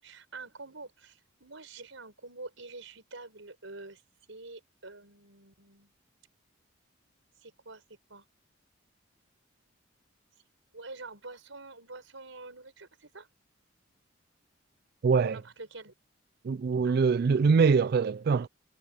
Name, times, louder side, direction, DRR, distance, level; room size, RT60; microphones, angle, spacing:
voice 1, 0.0-4.0 4.3-5.9 7.4-7.8 8.1-8.3 10.7-13.3 15.2-15.9 16.8-17.4, right 3 dB, 75° right, 5.0 m, -46 dB
voice 2, 15.0-15.4 16.4-18.5, right 5 dB, 50° right, 0.3 m, -23 dB
head